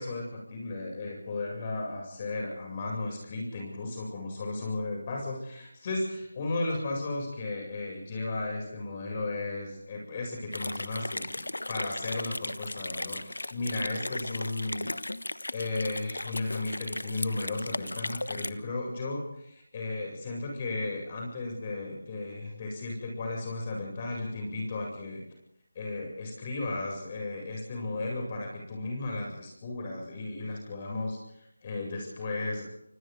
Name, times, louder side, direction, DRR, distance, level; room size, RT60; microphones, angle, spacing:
voice 1, 0.0-14.9 15.5-25.2 25.7-32.6, left 2 dB, 30° left, 0 dB, 7.9 m, -35 dB
sound 1, 10.5-18.5, left 1 dB, 85° left, 1.2 m, -36 dB
28.5 x 25.5 x 4.0 m, 0.76 s
figure-of-eight pair, 165°, 0 cm